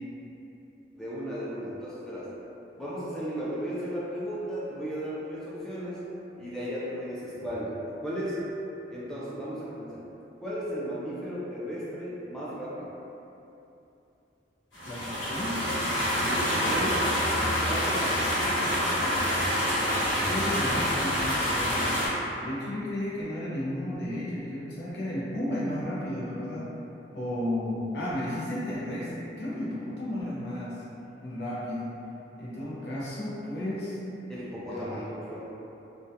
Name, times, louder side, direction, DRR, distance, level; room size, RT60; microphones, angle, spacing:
voice 1, 0.9-2.3 2.7-6.0 6.4-8.4 8.9-10.0 10.4-12.9 16.2-17.1 17.5-18.7 34.3-35.4, equal, 5° left, -9 dB, 0.4 m, -35 dB
sound 1, 14.7-22.1, equal, 90° left, 1.1 m, -27 dB
voice 2, 14.8-15.7 20.2-22.1 22.4-26.7 27.1-30.8 31.2-32.0 32.4-34.0 34.7-35.0, left 1 dB, 65° left, -8 dB, 0.6 m, -33 dB
2.3 x 2.2 x 2.7 m, 2.9 s
head